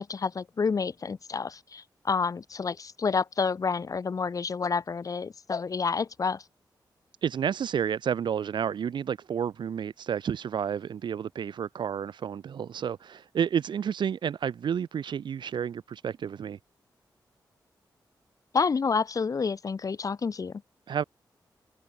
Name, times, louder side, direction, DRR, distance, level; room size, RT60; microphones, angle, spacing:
voice 1, 0.0-6.4 18.5-20.6, left 5 dB, 45° left, 0.7 m, -29 dB
voice 2, 7.2-16.6 20.9-21.0, right 8 dB, 75° right, 0.6 m, -30 dB
cardioid pair, 65°, 8 cm